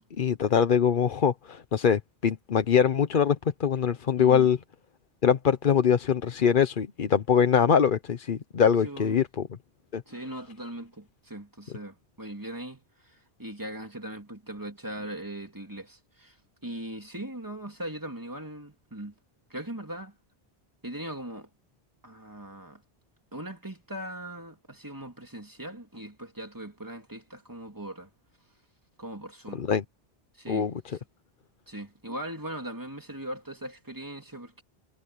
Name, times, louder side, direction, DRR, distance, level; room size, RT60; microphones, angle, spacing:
voice 1, 0.2-4.6 5.2-9.5 9.9-10.0 29.5-29.8 30.5-30.7, left 7 dB, 60° left, 1.0 m, -23 dB
voice 2, 4.2-4.5 8.8-9.2 10.1-16.4 16.6-19.1 19.5-20.1 20.8-21.5 22.0-22.8 23.3-28.1 29.0-29.6 30.3-31.0 31.7-34.6, right 1 dB, 20° right, 3.1 m, -40 dB
omnidirectional pair, 1.0 m